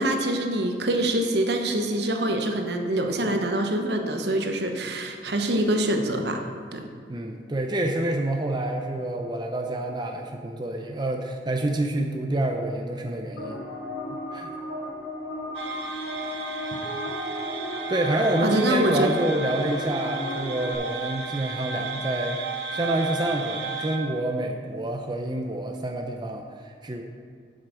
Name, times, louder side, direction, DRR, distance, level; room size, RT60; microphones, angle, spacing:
voice 1, 0.0-6.4 6.7-6.9 18.4-19.1, right 1 dB, 65° right, 4 dB, 1.0 m, -25 dB
voice 2, 7.1-13.6 14.3-14.5 17.9-27.0, right 1 dB, 25° right, 3 dB, 0.6 m, -28 dB
sound 1, 13.4-20.7, left 1 dB, 90° left, 2.8 m, -35 dB
sound 2, 15.5-24.0, right 4 dB, 90° right, 1.0 m, -34 dB
8.1 x 7.5 x 6.3 m, 2.1 s
head